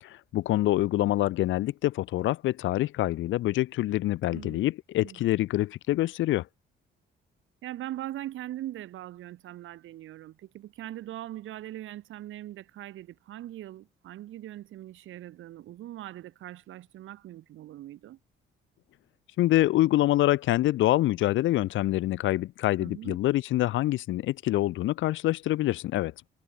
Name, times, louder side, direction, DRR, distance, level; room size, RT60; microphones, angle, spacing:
voice 1, 0.0-6.5 19.4-26.1, left 15 dB, 75° left, 0.5 m, -26 dB
voice 2, 4.3-4.7 5.0-5.2 7.6-18.2 22.8-23.2, right 13 dB, 80° right, 5.4 m, -41 dB
cardioid pair, 90°, 20 cm